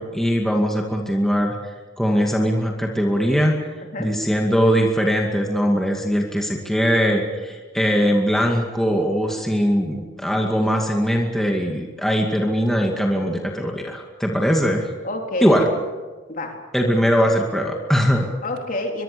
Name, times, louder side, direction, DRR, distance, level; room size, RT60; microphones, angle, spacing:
voice 1, 0.0-1.6 2.0-3.6 4.0-14.9 15.4-15.7 16.7-18.3, equal, ahead, 1 dB, 2.3 m, -20 dB
voice 2, 15.0-15.7 16.3-16.5 16.8-17.0 18.4-19.0, left 2 dB, 45° left, 2 dB, 3.8 m, -28 dB
23.5 x 23.0 x 6.9 m, 1.3 s
head